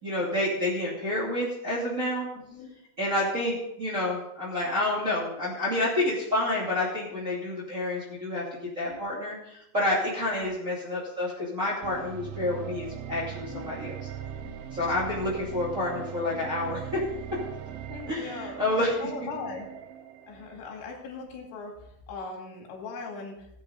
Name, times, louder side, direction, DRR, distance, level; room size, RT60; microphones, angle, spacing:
voice 1, 0.0-2.3 3.0-8.4 8.8-14.0 14.7-17.0 18.1-19.1, left 1 dB, 25° right, -6 dB, 2.1 m, -29 dB
voice 2, 2.4-2.7 8.9-9.0 10.4-10.5 13.5-13.7 14.4-14.6 17.9-18.6 19.0-19.7 20.3-23.5, left 4 dB, 75° left, 0 dB, 4.6 m, -40 dB
sound 1, 11.8-20.9, right 9 dB, 90° right, 3.4 m, -40 dB
17.0 x 8.8 x 4.0 m, 0.78 s
omnidirectional pair, 5.3 m